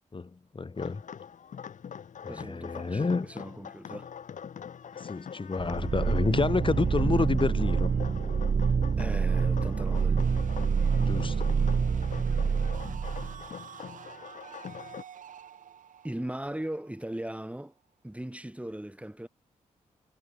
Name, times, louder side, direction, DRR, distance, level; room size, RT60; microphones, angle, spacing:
voice 1, 0.1-1.0 2.2-3.3 4.9-7.9 11.0-11.5, left 4 dB, 40° left, 3.2 m, -29 dB
sound 1, 0.8-15.0, left 7 dB, 75° left, 5.8 m, -43 dB
voice 2, 2.3-4.1 9.0-10.2 12.3-12.5 16.0-17.7 18.0-19.3, right 1 dB, 10° right, 4.5 m, -38 dB
sound 2, 5.6-13.4, right 6 dB, 55° right, 1.7 m, -27 dB
sound 3, 9.9-17.7, right 9 dB, 80° right, 5.4 m, -48 dB
supercardioid pair, 50°, 13 cm